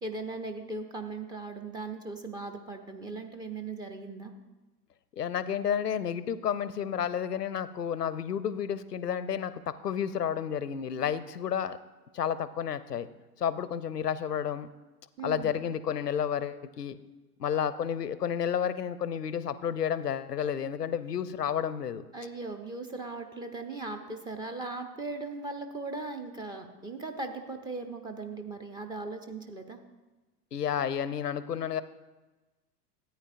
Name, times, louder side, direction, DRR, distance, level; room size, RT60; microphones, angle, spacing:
voice 1, 0.0-4.3 15.2-15.5 22.1-29.8, right 3 dB, 10° right, 6 dB, 0.4 m, -38 dB
voice 2, 5.1-11.8 12.1-13.1 13.4-14.7 15.2-17.0 17.4-22.0 30.5-31.8, left 8 dB, 85° left, 15 dB, 0.6 m, -31 dB
13.5 x 9.0 x 2.5 m, 1.2 s
figure-of-eight pair, 85°, 46 cm